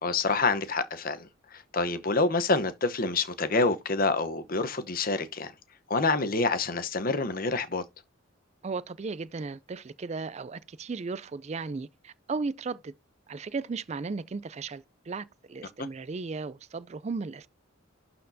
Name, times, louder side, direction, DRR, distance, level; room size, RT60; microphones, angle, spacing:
voice 1, 0.0-5.5 5.9-7.8 15.8-15.9, left 3 dB, 45° left, 0.9 m, -27 dB
voice 2, 8.6-12.9 13.3-17.5, right 4 dB, 35° right, 0.4 m, -35 dB
12.0 x 4.3 x 2.7 m
head